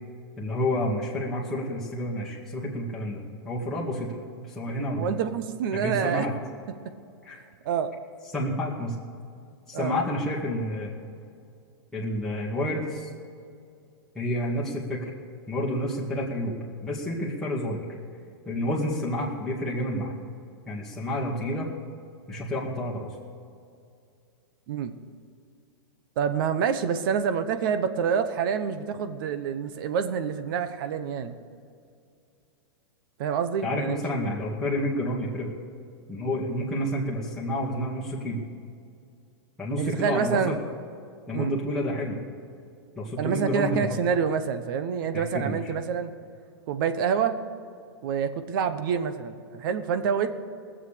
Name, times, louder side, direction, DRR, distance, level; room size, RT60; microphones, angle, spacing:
voice 1, 0.4-5.1 5.7-6.3 7.2-7.4 8.3-8.9 9.7-10.9 11.9-13.1 14.2-15.1 15.5-16.6 16.8-17.8 18.5-20.2 20.7-21.7 22.3-23.1 33.6-35.5 36.1-38.4 39.6-40.5 41.3-42.2 43.0-44.0 45.1-45.6, left 1 dB, 5° left, -7 dB, 2.1 m, -29 dB
voice 2, 5.0-6.3 7.6-7.9 9.7-10.0 24.7-24.9 26.2-31.4 33.2-34.0 39.8-40.6 41.3-41.6 43.2-46.1 46.7-47.4 48.0-50.3, right 7 dB, 55° right, 10 dB, 1.0 m, -27 dB
18.5 x 7.5 x 6.8 m, 2.4 s
hypercardioid pair, 135°, 13 cm